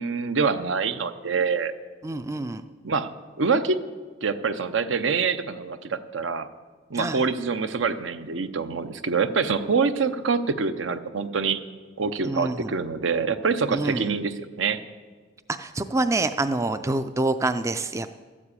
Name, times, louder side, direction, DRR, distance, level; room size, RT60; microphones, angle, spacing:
voice 1, 0.0-1.7 2.8-3.1 3.4-3.8 4.2-6.5 6.9-11.6 12.0-14.8, right 5 dB, 75° right, 11 dB, 0.7 m, -25 dB
voice 2, 2.0-2.6 6.9-7.2 12.2-12.7 13.7-14.1 15.6-18.1, right 2 dB, 15° right, 10 dB, 0.3 m, -26 dB
13.0 x 7.4 x 8.3 m, 1.5 s
head